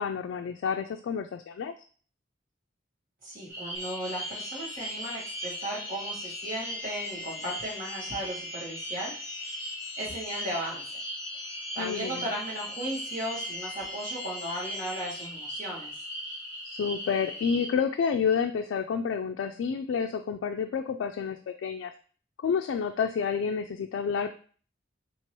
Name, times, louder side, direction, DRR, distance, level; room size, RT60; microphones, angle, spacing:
voice 1, 0.0-1.7 11.8-12.3 16.6-21.9 22.4-24.3, left 6 dB, 70° left, 5 dB, 0.3 m, -29 dB
voice 2, 3.2-9.2 9.5-9.6 10.0-10.8 11.3-11.5 11.7-15.9, right 1 dB, 45° right, -4 dB, 1.6 m, -36 dB
sound 1, 3.5-17.7, equal, 15° right, 1.6 m, -39 dB
sound 2, 3.7-15.3, left 3 dB, 25° left, 0.9 m, -44 dB
4.6 x 2.9 x 2.9 m, 0.43 s
head